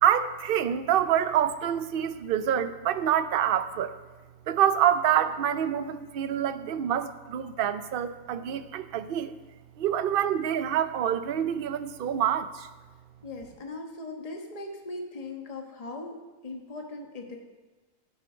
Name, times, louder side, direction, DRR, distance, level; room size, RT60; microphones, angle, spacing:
voice 1, 0.0-3.9 4.5-9.4 9.8-12.7, right 10 dB, 60° right, 11 dB, 0.6 m, -26 dB
voice 2, 13.2-17.4, left 2 dB, 25° left, 2 dB, 1.3 m, -39 dB
12.0 x 10.5 x 4.4 m, 1.2 s
omnidirectional pair, 1.6 m